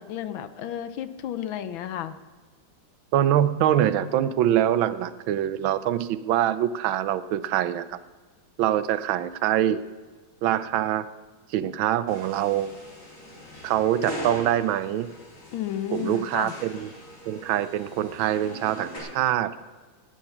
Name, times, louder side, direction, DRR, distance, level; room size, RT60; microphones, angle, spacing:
voice 1, 0.0-2.1 15.5-16.5, left 10 dB, 75° left, 12 dB, 1.5 m, -32 dB
voice 2, 3.1-8.0 8.6-9.8 10.4-11.0 11.5-12.7 13.6-15.1 15.9-16.9 17.3-19.5, right 11 dB, 75° right, 14 dB, 1.4 m, -24 dB
sound 1, 12.1-19.0, equal, 35° left, 3.7 m, -41 dB
17.5 x 9.1 x 5.8 m, 1.4 s
omnidirectional pair, 2.3 m